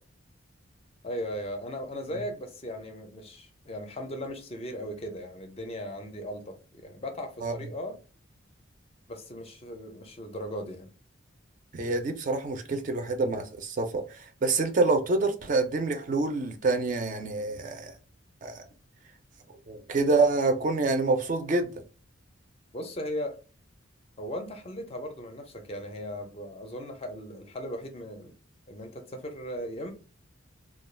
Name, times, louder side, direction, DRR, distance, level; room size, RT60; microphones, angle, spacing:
voice 1, 1.0-8.0 9.1-10.9 22.7-23.4 24.2-28.3 28.7-29.9, equal, 30° left, 0.4 m, -37 dB
voice 2, 11.7-17.9 18.4-18.6 19.7-21.7, right 3 dB, 40° right, 0.3 m, -27 dB
2.3 x 2.2 x 3.1 m
head